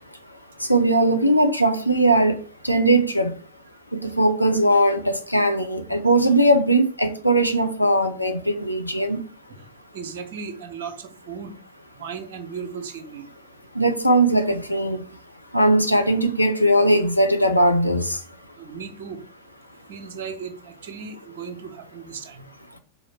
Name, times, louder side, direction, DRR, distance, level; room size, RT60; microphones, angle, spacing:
voice 1, 0.6-2.4 2.6-3.3 3.9-9.2 13.7-15.0 15.5-18.2, right 1 dB, 90° left, 0.9 m, -19 dB
voice 2, 9.9-11.5 12.0-13.3 18.6-19.2 19.9-22.4, right 6 dB, 55° right, 1.2 m, -36 dB
5.0 x 4.0 x 5.9 m
figure-of-eight pair, 90°, 0 cm